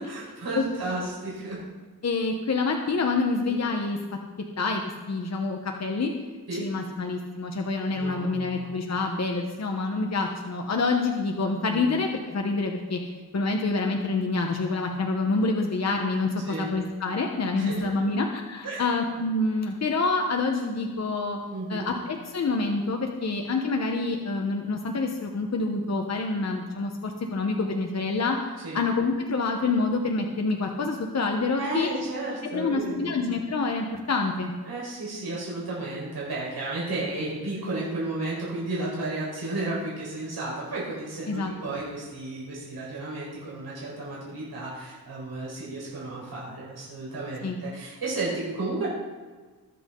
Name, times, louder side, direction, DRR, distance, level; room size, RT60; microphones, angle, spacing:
voice 1, 0.0-1.6 3.5-3.6 6.5-6.7 7.9-8.7 11.7-11.9 16.5-16.7 17.6-18.1 18.6-18.8 21.5-21.9 28.6-28.8 31.6-33.2 34.6-48.9, right 2 dB, 85° right, -6 dB, 4.6 m, -33 dB
voice 2, 2.0-4.0 4.6-6.1 6.5-13.0 13.3-21.4 21.7-28.4 28.7-31.9 32.4-34.5 41.3-41.5 47.4-47.6, left 3 dB, 45° left, 2 dB, 1.1 m, -27 dB
21.5 x 7.4 x 3.9 m, 1.4 s
wide cardioid pair, 155°, 37 cm